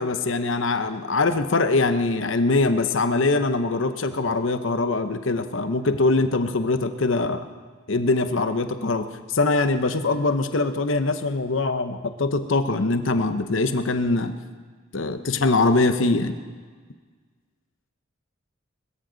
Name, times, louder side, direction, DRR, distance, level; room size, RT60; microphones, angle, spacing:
voice 1, 0.0-7.4 7.9-14.3 14.9-16.4, left 3 dB, 65° left, 9 dB, 0.9 m, -23 dB
21.0 x 14.0 x 4.0 m, 1.5 s
head